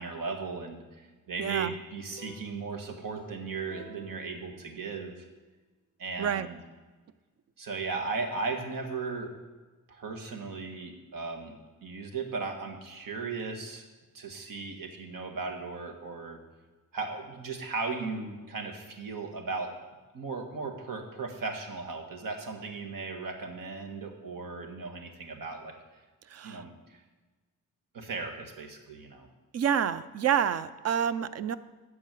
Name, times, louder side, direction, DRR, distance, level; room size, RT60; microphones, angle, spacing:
voice 1, 0.0-5.3 6.0-6.6 7.6-9.3 9.9-13.9 14.1-16.4 16.9-19.7 20.1-25.7 26.4-27.0 27.9-29.3, right 4 dB, 90° right, 3 dB, 1.8 m, -37 dB
voice 2, 1.4-1.7 6.2-6.5 26.3-26.6 29.5-31.6, right 8 dB, 50° right, 15 dB, 0.5 m, -28 dB
sound 1, 2.0-5.4, right 3 dB, 25° right, 1.8 m, -53 dB
14.0 x 4.7 x 9.1 m, 1.3 s
wide cardioid pair, 160°, 33 cm